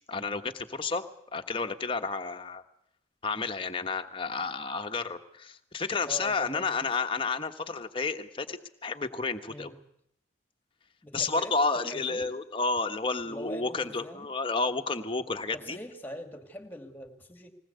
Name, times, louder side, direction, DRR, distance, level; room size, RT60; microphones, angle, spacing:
voice 1, 0.1-2.6 3.2-9.7 11.1-15.8, left 4 dB, 25° left, 6 dB, 1.3 m, -31 dB
voice 2, 6.0-6.9 9.5-9.8 11.0-12.3 13.2-14.3 15.5-17.5, equal, 10° left, 6 dB, 2.4 m, -43 dB
20.5 x 19.5 x 8.2 m, 0.75 s
head